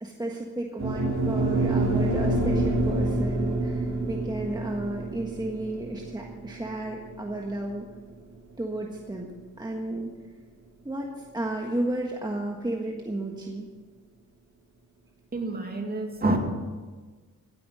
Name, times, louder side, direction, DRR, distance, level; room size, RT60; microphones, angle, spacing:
voice 1, 0.0-7.9 8.6-9.3 9.6-10.1 10.8-13.7, right 1 dB, 10° right, 0 dB, 1.5 m, -33 dB
sound 1, 0.8-9.0, right 2 dB, 55° right, 4.1 m, -27 dB
voice 2, 15.3-16.4, right 2 dB, 30° right, 3 dB, 2.3 m, -27 dB
16.5 x 9.7 x 6.4 m, 1.4 s
wide cardioid pair, 115°, 32 cm